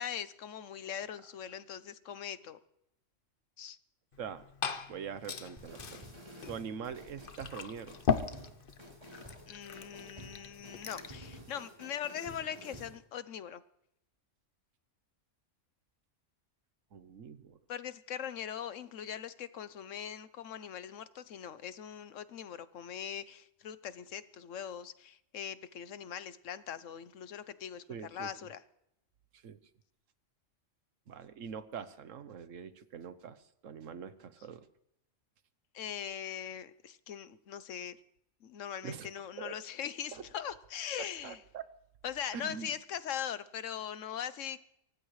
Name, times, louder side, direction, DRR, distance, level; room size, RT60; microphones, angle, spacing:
voice 1, 0.0-2.6 3.6-3.8 9.5-13.6 17.7-28.6 35.7-38.0 38.4-41.4 42.0-44.6, left 9 dB, 80° left, 14 dB, 1.2 m, -41 dB
Glass / Fill (with liquid), 4.1-11.2, left 6 dB, 50° left, 1.0 m, -39 dB
voice 2, 4.9-6.0 6.5-8.0 16.9-17.6 27.9-28.3 29.3-29.6 31.1-34.7 38.8-39.1 39.4-39.6 40.1-40.3 41.0-41.7 42.3-42.7, right 7 dB, 90° right, 12 dB, 1.3 m, -43 dB
sound 1, 5.6-13.0, equal, 30° right, 3.9 m, -51 dB
24.0 x 18.5 x 3.2 m, 0.81 s
omnidirectional pair, 1.3 m